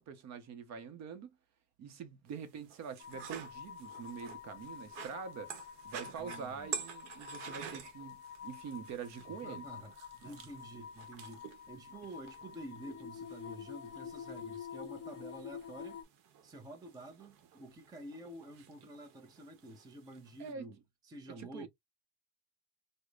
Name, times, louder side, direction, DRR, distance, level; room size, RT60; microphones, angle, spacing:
voice 1, 0.0-1.4 1.8-5.5 5.8-9.7 10.2-10.3 20.4-20.7 21.4-21.7, right 6 dB, 45° right, 0.8 m, -45 dB
sound 1, 2.3-20.5, right 7 dB, 75° right, 1.0 m, -50 dB
sound 2, 3.0-16.0, left 7 dB, 40° left, 0.5 m, -48 dB
voice 2, 6.2-6.8 9.3-16.0 16.4-20.8 21.0-21.7, right 1 dB, 10° right, 0.6 m, -49 dB
4.7 x 2.2 x 2.4 m
cardioid pair, 150°, 39 cm